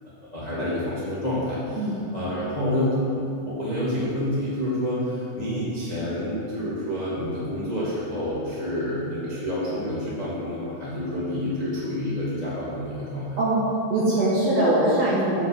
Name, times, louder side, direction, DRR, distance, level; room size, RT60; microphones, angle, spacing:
voice 1, 0.3-1.9 2.1-3.0 3.4-13.4, left 1 dB, 55° left, -9 dB, 0.4 m, -28 dB
voice 2, 13.9-15.5, right 1 dB, 60° right, -7 dB, 1.8 m, -22 dB
7.2 x 6.1 x 7.8 m, 2.5 s
omnidirectional pair, 4.8 m